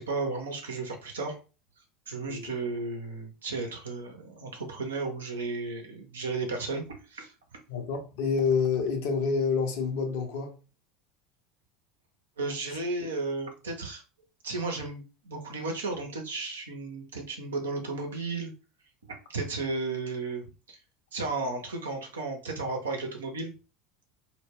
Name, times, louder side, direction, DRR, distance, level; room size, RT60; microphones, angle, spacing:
voice 1, 0.0-1.4 2.1-7.3 12.4-14.0 14.4-18.5 19.1-20.8 21.1-23.5, right 3 dB, 80° right, 0.7 m, -34 dB
voice 2, 7.7-10.5, left 5 dB, 65° left, 0.6 m, -28 dB
2.2 x 2.1 x 3.4 m
figure-of-eight pair, 75°, 0 cm